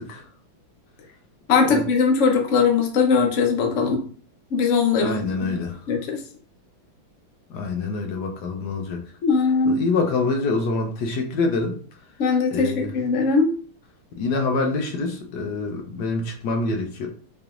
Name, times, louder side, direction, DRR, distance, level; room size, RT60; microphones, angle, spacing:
voice 1, 1.5-4.0 4.5-5.5 5.9-6.2 9.2-9.8 12.2-13.5, left 5 dB, 85° left, 2 dB, 0.6 m, -20 dB
voice 2, 5.0-5.8 7.5-9.0 9.7-11.8 12.5-12.9 14.2-17.1, left 3 dB, 70° left, 3 dB, 1.0 m, -25 dB
4.9 x 2.9 x 2.5 m, 0.44 s
omnidirectional pair, 2.4 m